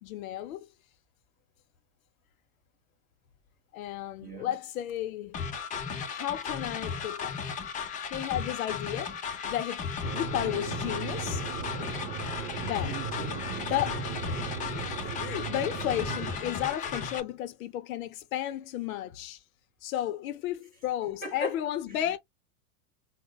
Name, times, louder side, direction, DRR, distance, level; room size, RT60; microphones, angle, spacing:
voice 1, 0.0-0.7 3.7-5.4 5.9-7.3 8.1-9.1 9.5-9.8 10.1-11.5 12.6-12.9 13.5-14.1 15.0-19.4 19.8-22.2, left 12 dB, 60° left, 0.6 m, -33 dB
voice 2, 4.2-4.5 12.8-13.7 14.3-14.8 21.2-21.5, equal, 20° right, 2.5 m, -38 dB
sound 1, 5.3-17.2, left 6 dB, 15° left, 0.6 m, -35 dB
sound 2, 10.0-16.4, right 6 dB, 35° right, 1.0 m, -37 dB
4.8 x 2.1 x 2.3 m
supercardioid pair, 140°, 47 cm